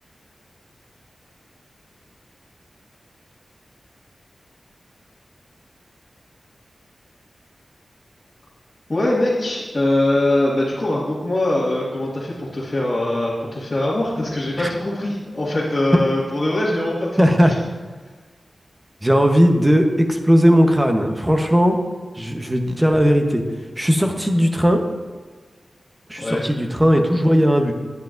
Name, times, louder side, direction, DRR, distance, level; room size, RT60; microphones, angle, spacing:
voice 1, 8.9-17.1 17.4-17.5 26.2-26.5, left 1 dB, 35° left, -9 dB, 1.8 m, -22 dB
voice 2, 17.2-17.5 19.0-21.8 22.1-23.4 23.8-24.9 26.1-27.7, equal, 15° right, 4 dB, 0.9 m, -17 dB
10.0 x 9.4 x 2.6 m, 1.4 s
wide cardioid pair, 85°, 0 cm